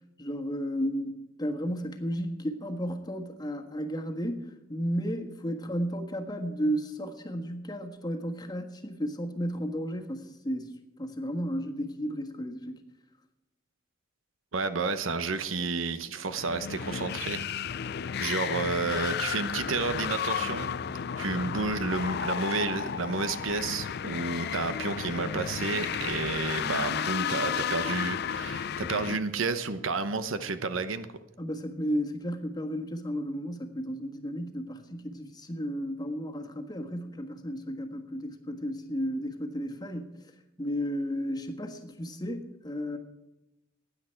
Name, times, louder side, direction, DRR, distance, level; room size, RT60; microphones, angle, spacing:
voice 1, 0.2-10.7 11.0-12.8 31.4-40.2 40.6-43.0, equal, 20° left, 3 dB, 1.5 m, -33 dB
voice 2, 14.5-17.5 18.2-20.7 21.2-31.1, right 4 dB, 85° right, 11 dB, 1.0 m, -31 dB
sound 1, 16.3-29.2, left 7 dB, 55° left, 0.4 m, -33 dB
16.5 x 10.0 x 4.5 m, 0.97 s
head